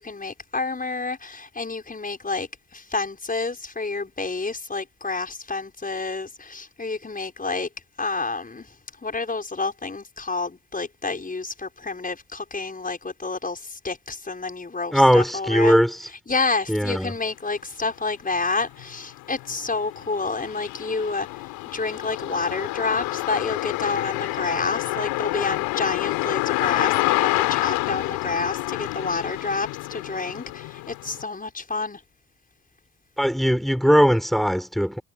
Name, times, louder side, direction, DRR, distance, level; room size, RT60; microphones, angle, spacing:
voice 1, 0.0-7.7 8.0-8.8 9.0-15.7 16.3-32.0, left 3 dB, 25° left, 6.0 m, -29 dB
voice 2, 14.9-16.1 16.7-17.1 33.2-35.0, equal, ahead, 5.7 m, -19 dB
sound 1, 17.8-17.9 18.4-31.2, left 21 dB, 70° left, 4.1 m, -28 dB
hypercardioid pair, 50°, 37 cm